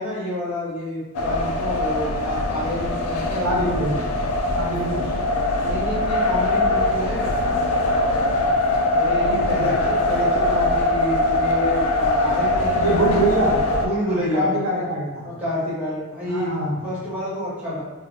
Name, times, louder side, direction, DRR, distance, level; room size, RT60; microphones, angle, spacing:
voice 1, 0.0-3.7 4.9-5.0 5.6-7.3 8.9-13.4 13.8-14.6 15.2-16.5 16.8-17.8, left 1 dB, 5° right, -10 dB, 0.9 m, -28 dB
sound 1, 1.1-13.9, left 2 dB, 90° left, 0.4 m, -22 dB
voice 2, 3.4-3.9 4.5-5.1 9.2-9.8 12.7-13.6 14.1-15.3 16.2-16.8, right 1 dB, 70° right, -2 dB, 0.5 m, -24 dB
2.4 x 2.0 x 3.3 m, 1.2 s
head